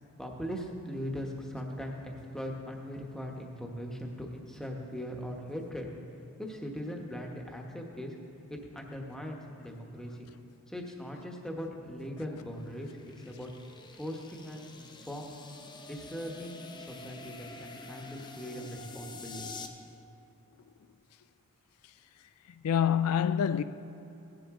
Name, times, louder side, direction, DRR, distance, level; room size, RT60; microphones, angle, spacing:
voice 1, 0.2-5.9 6.4-8.1 8.5-10.3 10.7-13.5 13.9-15.3 15.9-19.5, equal, ahead, 1.1 m, -40 dB
sound 1, 11.7-19.7, left 3 dB, 20° left, 0.6 m, -48 dB
voice 2, 22.5-23.6, left 8 dB, 80° left, 0.4 m, -26 dB
17.0 x 10.5 x 3.7 m
head